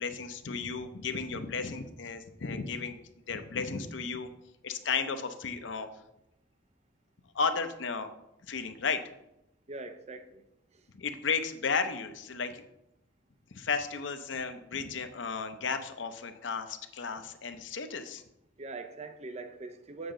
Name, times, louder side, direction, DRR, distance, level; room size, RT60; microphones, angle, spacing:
voice 1, 0.0-3.0 3.3-4.3 4.6-5.9 7.3-8.1 8.5-9.0 10.9-12.6 13.5-18.2, left 5 dB, 80° left, 0.7 m, -34 dB
voice 2, 9.7-10.4 18.6-20.1, right 3 dB, 35° right, 0.6 m, -42 dB
7.1 x 7.0 x 3.8 m
head